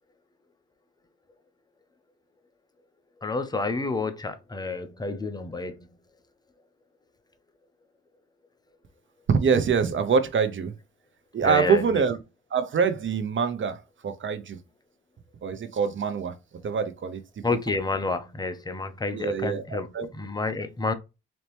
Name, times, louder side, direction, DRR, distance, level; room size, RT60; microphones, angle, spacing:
voice 1, 3.2-5.8 11.4-11.8 17.4-19.9 20.1-20.9, left 3 dB, 15° left, 0.7 m, -29 dB
voice 2, 9.3-10.7 11.3-12.2 12.5-14.6 15.4-16.4 16.6-17.6 19.1-20.1, right 6 dB, 40° right, 0.8 m, -25 dB
4.2 x 2.9 x 3.4 m
cardioid pair, 90°, 30 cm